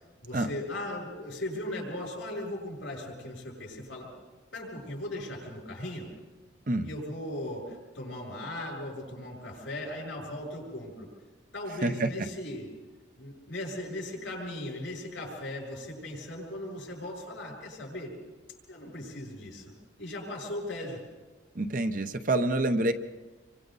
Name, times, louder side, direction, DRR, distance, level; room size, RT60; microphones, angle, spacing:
voice 1, 0.2-4.1 4.5-6.1 6.8-11.1 11.5-12.6 13.2-18.1 18.7-19.7 20.0-21.0, left 1 dB, 85° left, -2 dB, 7.3 m, -38 dB
voice 2, 21.5-22.9, right 2 dB, 45° right, 8 dB, 0.9 m, -27 dB
28.0 x 24.0 x 4.1 m, 1.2 s
head